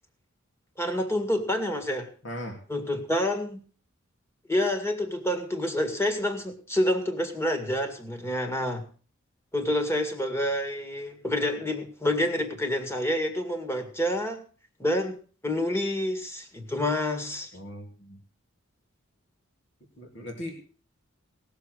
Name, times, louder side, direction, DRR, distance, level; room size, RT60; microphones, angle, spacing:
voice 1, 0.8-2.1 2.7-3.6 4.5-8.8 9.5-14.4 14.8-15.2 15.4-17.5, left 1 dB, 15° left, 5 dB, 2.1 m, -28 dB
voice 2, 2.2-2.6 17.5-18.2 20.0-20.6, left 1 dB, 60° left, 3 dB, 2.8 m, -38 dB
18.5 x 7.1 x 6.5 m, 0.40 s
head